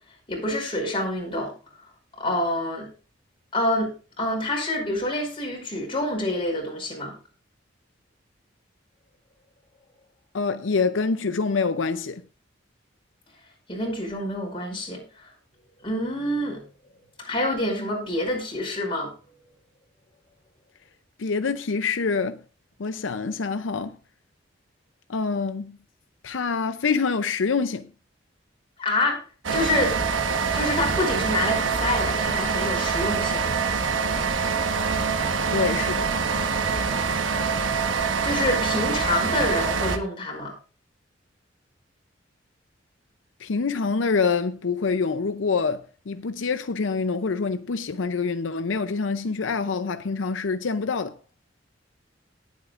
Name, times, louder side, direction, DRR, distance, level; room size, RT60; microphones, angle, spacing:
voice 1, 0.3-1.5 2.2-2.9 3.5-7.1 13.7-15.3 15.8-16.6 17.2-19.1 28.8-29.2 29.5-30.0 30.5-33.5 38.2-40.5, left 1 dB, 30° left, 5.2 m, -27 dB
voice 2, 10.3-12.2 21.2-22.4 22.8-24.0 25.1-25.8 26.2-27.9 35.5-36.1 43.4-51.2, left 4 dB, 85° left, 0.6 m, -26 dB
sound 1, 29.4-40.0, right 5 dB, 85° right, 1.2 m, -25 dB
19.0 x 8.3 x 2.5 m
head